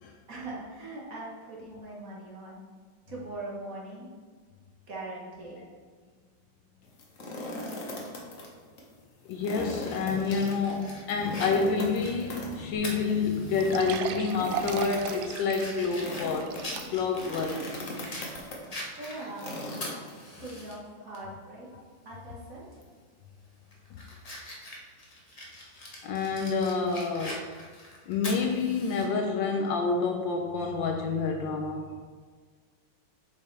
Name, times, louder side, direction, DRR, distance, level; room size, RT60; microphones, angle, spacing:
voice 1, 0.3-2.6 3.1-4.1 4.9-5.7 18.9-19.6 20.3-21.7 22.0-22.8, right 2 dB, 45° right, -5 dB, 1.7 m, -41 dB
sound 1, 6.8-8.5 8.8-8.9 9.3-20.5, left 1 dB, 45° left, 1.2 m, -40 dB
voice 2, 9.3-16.5 16.9-17.6 20.0-20.1 26.0-27.5 28.1-32.0, left 4 dB, 75° left, 3 dB, 1.2 m, -28 dB
Fire, 9.9-13.8 14.2-14.3 14.8-18.3 18.7-20.7 21.1-21.2 22.7-23.0 23.5-29.1, left 1 dB, 30° left, 0.7 m, -43 dB
sound 2, 12.7-12.8 13.1-13.2 13.6-17.2 17.7-17.8 18.3-18.4, right 7 dB, 75° right, 1.2 m, -37 dB
7.6 x 5.6 x 3.3 m, 1.5 s
omnidirectional pair, 2.3 m